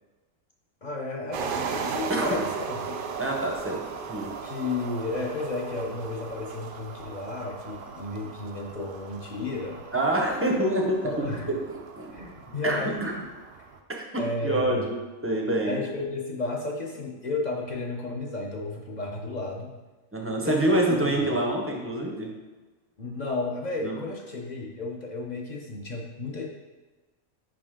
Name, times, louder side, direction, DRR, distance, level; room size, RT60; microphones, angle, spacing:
voice 1, 0.8-3.0 4.4-9.8 11.0-11.5 12.1-13.2 14.2-14.9 15.7-19.7 20.4-21.3 23.0-26.4, left 3 dB, 45° left, 0 dB, 0.6 m, -33 dB
sound 1, 1.3-13.8, right 6 dB, 75° right, 0.5 m, -37 dB
voice 2, 2.1-2.4 3.2-3.8 4.1-4.3 9.9-11.3 11.7-12.3 12.6-13.1 14.1-15.8 20.1-22.3 23.8-24.0, right 1 dB, 15° right, -1 dB, 0.5 m, -26 dB
5.4 x 5.0 x 3.7 m, 1.2 s
omnidirectional pair, 1.4 m